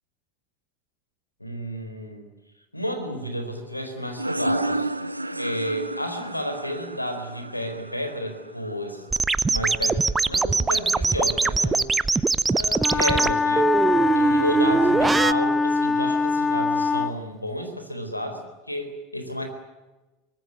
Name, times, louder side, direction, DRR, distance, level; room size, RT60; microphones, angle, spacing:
voice 1, 1.4-2.3 2.7-4.9 5.3-9.1 9.5-11.9 12.5-13.7 14.1-18.4 18.7-19.5, equal, 90° left, 7 dB, 4.1 m, -31 dB
sound 1, 4.1-9.5, right 2 dB, 85° right, 1.0 m, -31 dB
sound 2, 9.1-15.3, right 3 dB, 15° right, 0.7 m, -22 dB
Wind instrument woodwind instrument, 12.8-17.2, left 4 dB, 15° left, 0.9 m, -23 dB
24.0 x 19.5 x 9.7 m, 1.1 s
figure-of-eight pair, 80°, 0 cm